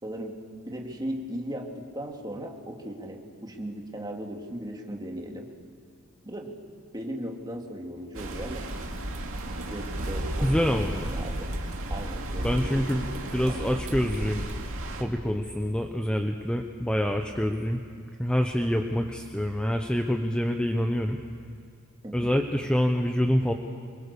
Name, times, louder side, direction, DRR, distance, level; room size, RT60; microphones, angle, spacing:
voice 1, 0.0-0.4 0.6-5.5 6.2-6.5 6.9-8.7 9.7-10.8 11.1-11.5 11.9-13.7 22.0-22.4, right 1 dB, 20° right, 1 dB, 2.4 m, -37 dB
sound 1, 8.1-15.0, right 1 dB, 65° right, 2.4 m, -33 dB
voice 2, 10.4-11.1 12.4-13.1 13.3-14.4 15.0-17.8 18.2-21.2 22.1-23.5, equal, 5° left, 4 dB, 0.9 m, -26 dB
24.5 x 22.5 x 6.9 m, 2.4 s
head